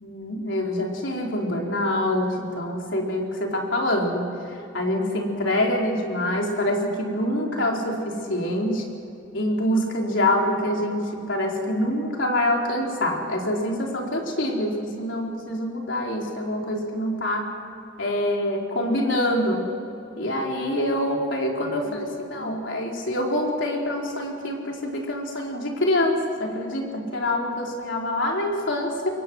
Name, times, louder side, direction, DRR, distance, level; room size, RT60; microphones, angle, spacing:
voice 1, 0.0-8.8 9.3-17.5 18.0-19.7 20.2-29.1, left 1 dB, 70° left, 0 dB, 4.2 m, -25 dB
27.0 x 22.5 x 6.3 m, 2.6 s
head